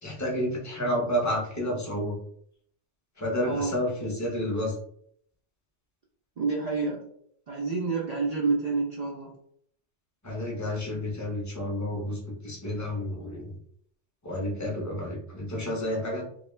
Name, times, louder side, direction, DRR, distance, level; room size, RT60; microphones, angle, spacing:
voice 1, 0.0-2.2 3.2-4.7 10.2-13.5 14.2-16.3, equal, 20° left, -2 dB, 0.5 m, -30 dB
voice 2, 3.4-3.7 6.4-7.0 7.5-9.3, right 4 dB, 75° right, -2 dB, 0.3 m, -28 dB
2.2 x 2.1 x 3.0 m, 0.66 s
omnidirectional pair, 1.2 m